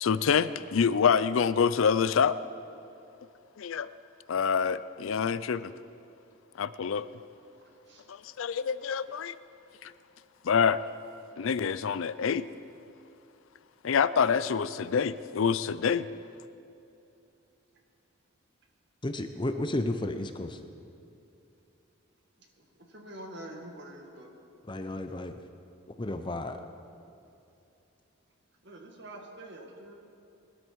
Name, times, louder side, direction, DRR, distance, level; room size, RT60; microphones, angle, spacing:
voice 1, 0.0-2.4 3.6-3.9 4.3-5.7 6.6-7.1 8.1-9.3 9.8-9.9 10.4-10.8 11.4-12.5 13.8-16.1, left 6 dB, 70° left, 15 dB, 0.4 m, -26 dB
voice 2, 19.0-20.6 24.6-25.4 26.0-26.6, left 1 dB, 20° left, 8 dB, 0.6 m, -32 dB
voice 3, 22.9-24.3 28.6-29.9, right 1 dB, 55° right, 2 dB, 2.0 m, -45 dB
20.5 x 12.5 x 4.6 m, 2.7 s
head